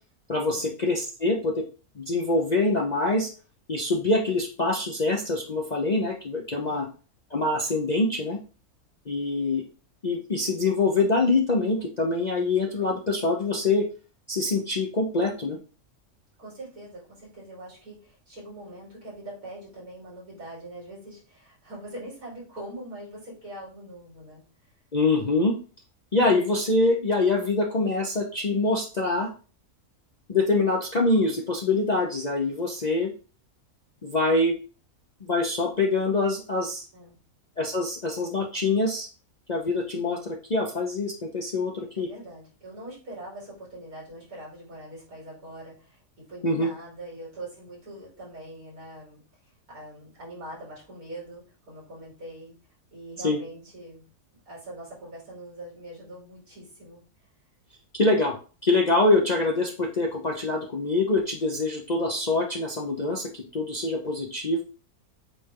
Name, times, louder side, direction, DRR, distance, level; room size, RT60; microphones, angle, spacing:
voice 1, 0.3-1.6 2.0-3.3 3.7-6.9 7.3-8.4 9.1-9.6 10.0-13.8 14.3-15.6 24.9-25.5 26.1-29.3 30.3-33.1 34.0-34.6 35.2-36.9 37.6-39.1 39.5-42.1 46.4-46.7 53.2-53.4 58.0-58.3 58.6-64.6, left 2 dB, 40° left, 1 dB, 0.7 m, -25 dB
voice 2, 16.4-24.7 36.9-37.2 41.9-52.6 52.9-54.0 54.4-57.0, right 1 dB, 75° right, -6 dB, 4.3 m, -43 dB
8.1 x 3.4 x 3.7 m, 0.37 s
omnidirectional pair, 1.6 m